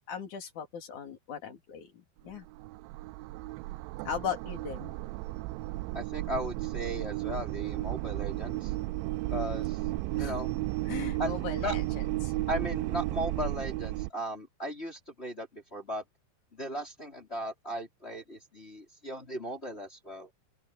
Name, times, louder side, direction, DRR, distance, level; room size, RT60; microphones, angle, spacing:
voice 1, 0.1-2.5 4.0-5.0 10.1-10.3 10.9-12.3, left 7 dB, 45° left, 3.8 m, -38 dB
sound 1, 2.2-14.1, right 19 dB, 85° right, 2.9 m, -34 dB
voice 2, 5.9-8.7 9.3-9.8 10.2-10.5 11.2-11.3 11.6-11.8 12.5-16.0 16.5-20.3, equal, 15° left, 3.6 m, -37 dB
open air
omnidirectional pair, 5.3 m